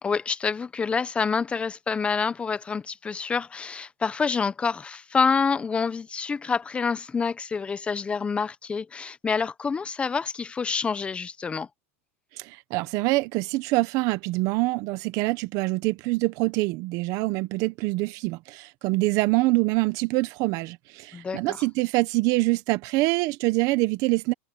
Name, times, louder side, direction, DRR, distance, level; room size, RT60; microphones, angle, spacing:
voice 1, 0.0-11.7 21.1-21.6, left 5 dB, 15° left, 1.0 m, -27 dB
voice 2, 12.3-24.3, right 22 dB, 45° right, 1.3 m, -25 dB
supercardioid pair, 135°, 8 cm